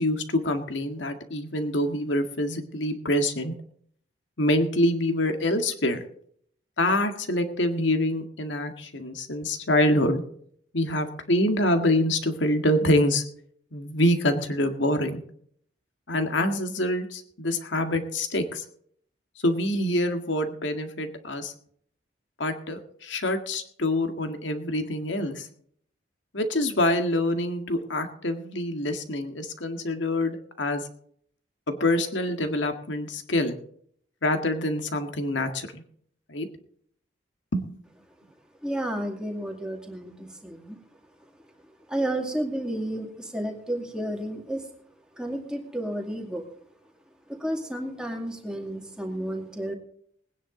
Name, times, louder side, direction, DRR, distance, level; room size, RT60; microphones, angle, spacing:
voice 1, 0.0-3.5 4.4-6.0 6.8-10.2 10.7-13.2 13.7-15.2 16.1-18.6 19.4-21.5 22.4-25.5 26.3-30.8 31.7-33.6 34.2-35.8 36.3-36.5 37.5-37.7, left 1 dB, 80° left, 6 dB, 1.9 m, -26 dB
voice 2, 38.6-40.8 41.2-41.4 41.9-44.7 45.1-46.5 47.3-49.7, right 1 dB, 5° right, 1 dB, 2.2 m, -32 dB
20.0 x 10.0 x 3.9 m, 0.62 s
head